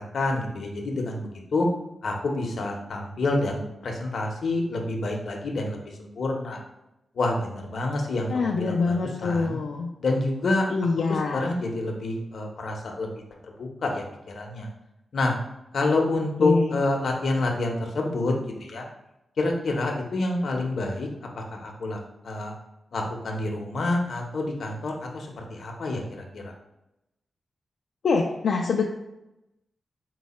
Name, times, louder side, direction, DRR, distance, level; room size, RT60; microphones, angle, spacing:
voice 1, 0.0-1.7 2.0-6.6 7.1-9.0 9.2-9.6 10.0-10.7 11.1-13.1 13.4-14.7 15.1-15.3 15.7-18.3 18.6-18.8 19.4-21.1 21.4-22.0 22.2-22.5 22.9-26.5, left 2 dB, 65° left, 1 dB, 0.8 m, -28 dB
voice 2, 8.3-9.9 10.7-11.5 16.4-16.8 28.0-28.9, left 4 dB, 80° left, -1 dB, 0.4 m, -25 dB
4.7 x 2.1 x 4.1 m, 0.91 s
wide cardioid pair, 125°, 0 cm